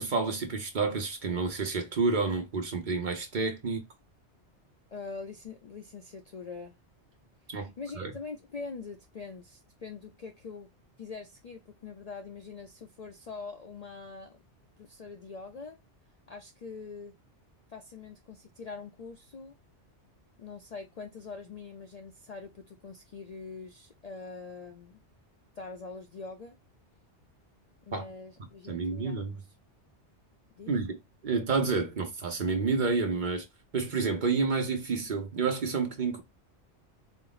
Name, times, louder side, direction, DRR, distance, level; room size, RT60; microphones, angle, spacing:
voice 1, 0.0-3.8 7.5-8.1 27.9-28.0 28.7-29.3 30.7-31.0 31.2-33.5 33.7-36.2, right 4 dB, 50° right, 0.8 m, -29 dB
voice 2, 4.9-6.8 7.5-10.7 11.0-14.4 14.8-15.8 16.3-17.1 17.7-19.5 20.4-25.0 25.5-26.6 27.8-29.2 30.6-30.7, left 4 dB, 55° left, 0.4 m, -43 dB
4.3 x 2.0 x 3.8 m
omnidirectional pair, 1.2 m